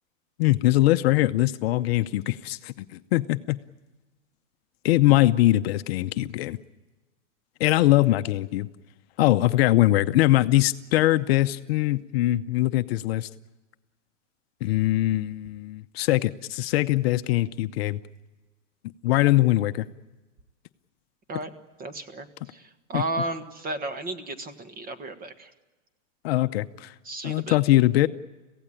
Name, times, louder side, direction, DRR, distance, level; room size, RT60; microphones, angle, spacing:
voice 1, 0.4-3.6 4.8-6.6 7.6-8.7 9.2-13.3 14.6-18.0 19.0-19.9 22.9-23.0 26.2-26.9 27.2-28.1, left 16 dB, 50° left, 10 dB, 0.8 m, -22 dB
voice 2, 21.8-25.5 27.0-27.6, right 2 dB, 20° right, 8 dB, 1.6 m, -33 dB
26.0 x 16.5 x 10.0 m, 1.2 s
supercardioid pair, 150°, 38 cm